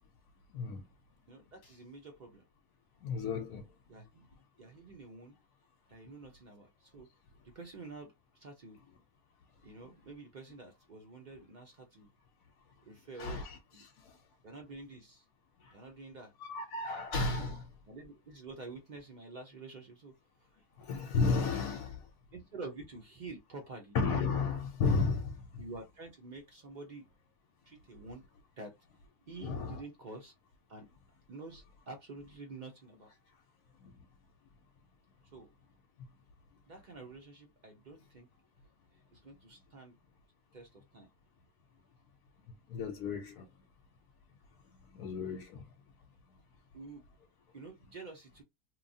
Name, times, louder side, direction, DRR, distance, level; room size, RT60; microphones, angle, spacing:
voice 1, 0.5-0.8 3.0-3.7 13.2-14.2 15.6-15.7 16.5-17.7 20.8-22.1 23.9-25.6 29.4-29.8 33.8-33.9 42.7-43.5 44.9-45.6, left 4 dB, 85° left, 1.1 m, -33 dB
voice 2, 1.3-2.4 3.9-4.2 4.6-5.4 5.9-7.1 7.4-8.8 9.6-12.1 12.9-13.9 14.4-15.3 15.7-16.3 17.9-20.9 22.3-24.0 25.6-27.1 27.7-28.2 28.6-28.8 29.3-30.3 30.7-30.9 31.3-33.1 35.3-35.5 36.7-38.3 38.9-40.0 40.5-41.1 46.7-47.0 47.5-48.4, right 3 dB, 75° right, 0.4 m, -49 dB
2.9 x 2.3 x 2.6 m
omnidirectional pair, 1.6 m